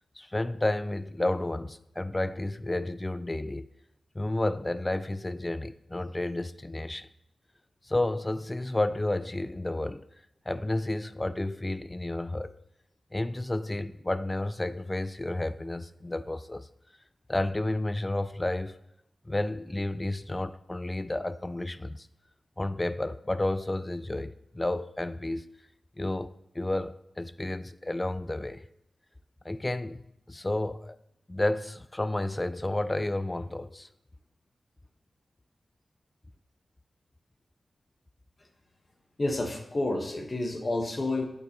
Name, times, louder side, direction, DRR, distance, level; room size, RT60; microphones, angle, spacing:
voice 1, 0.2-3.7 4.1-7.1 7.8-10.1 10.5-12.6 13.1-16.7 17.3-18.8 19.2-22.1 22.6-25.5 26.0-28.7 29.4-30.0 30.3-31.0 31.3-33.9, left 1 dB, 20° left, 0.4 m, -31 dB
voice 2, 39.2-41.2, left 2 dB, 40° left, 1.2 m, -29 dB
8.3 x 8.0 x 2.9 m
cardioid pair, 55°, 0 cm